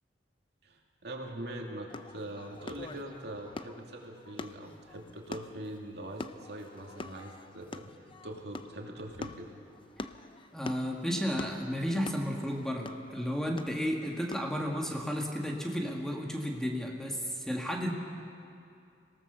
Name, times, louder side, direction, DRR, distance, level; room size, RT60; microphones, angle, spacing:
voice 1, 0.6-9.5, right 1 dB, 65° right, 1 dB, 2.6 m, -43 dB
sound 1, 1.9-14.6, left 2 dB, 30° left, 0.6 m, -45 dB
voice 2, 10.5-17.9, equal, 5° left, 0 dB, 2.0 m, -33 dB
25.5 x 18.0 x 6.9 m, 2.5 s
head